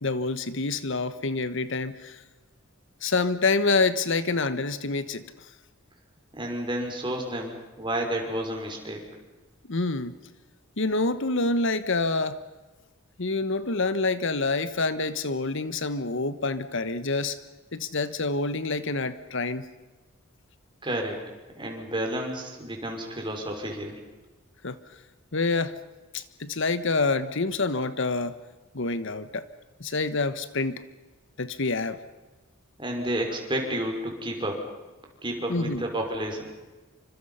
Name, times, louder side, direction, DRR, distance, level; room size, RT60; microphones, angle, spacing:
voice 1, 0.0-2.2 3.0-5.2 9.7-10.1 10.8-12.4 13.2-17.4 17.7-19.6 24.6-24.8 25.3-25.7 26.1-28.4 28.7-29.5 29.8-30.8 31.4-32.0 35.5-35.8, left 3 dB, 65° left, 13 dB, 1.3 m, -27 dB
voice 2, 6.3-9.0 20.8-21.2 21.6-23.9 32.8-34.6 35.2-36.5, right 1 dB, 25° right, 2 dB, 5.8 m, -31 dB
29.0 x 25.5 x 5.8 m, 1.2 s
head